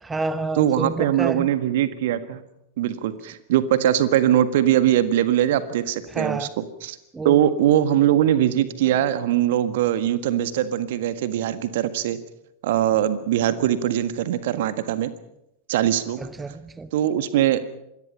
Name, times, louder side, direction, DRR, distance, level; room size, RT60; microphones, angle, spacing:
voice 1, 0.0-1.5 6.1-6.5 7.1-7.4 16.2-16.9, right 3 dB, 10° right, 14 dB, 0.9 m, -29 dB
voice 2, 0.6-2.4 2.8-7.0 7.3-12.2 12.6-15.1 15.7-16.2 16.9-17.6, right 11 dB, 55° right, 12 dB, 1.7 m, -21 dB
27.0 x 21.5 x 5.6 m, 0.85 s
figure-of-eight pair, 90°, 0 cm